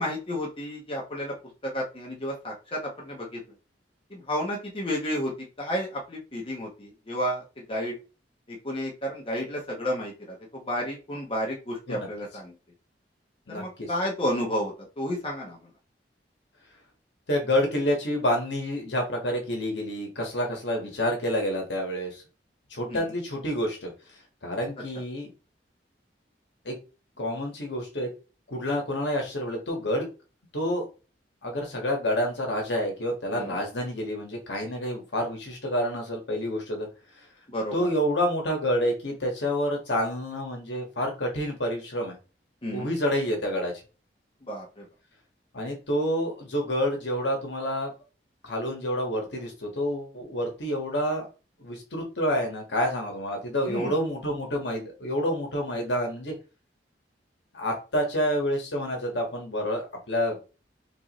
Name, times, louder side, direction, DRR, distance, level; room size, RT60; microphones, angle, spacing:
voice 1, 0.0-1.4 1.6-3.4 4.1-5.3 5.6-8.0 8.5-12.5 13.5-15.7 22.9-23.1 33.3-33.6 37.5-37.9 42.6-42.9 44.4-44.8 53.6-54.0, equal, 30° left, -2 dB, 1.0 m, -32 dB
voice 2, 13.5-13.9 17.3-22.2 22.7-23.9 24.4-25.3 26.6-26.7 27.2-28.1 28.5-30.1 30.5-30.9 31.4-36.9 37.7-42.2 42.7-43.7 45.5-47.9 48.4-51.3 51.6-56.3 57.5-60.4, equal, 80° left, 1 dB, 1.4 m, -28 dB
4.5 x 2.6 x 3.0 m, 0.32 s
head